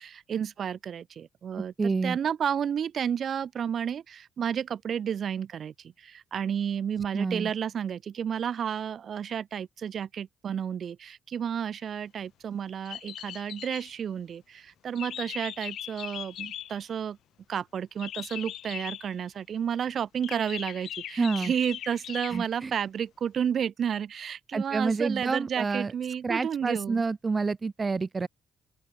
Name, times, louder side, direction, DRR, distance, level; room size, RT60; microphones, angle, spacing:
voice 1, 0.0-17.2 17.5-27.1, right 8 dB, 55° right, 0.9 m, -31 dB
voice 2, 1.6-2.2 7.1-7.5 21.2-21.5 22.3-22.7 24.5-25.9 26.2-28.3, right 4 dB, 30° right, 0.7 m, -28 dB
sound 1, 12.8-14.0 15.0-16.9 18.0-19.1 20.2-22.6, left 11 dB, 75° left, 2.3 m, -40 dB
open air
cardioid pair, 90°, 0 cm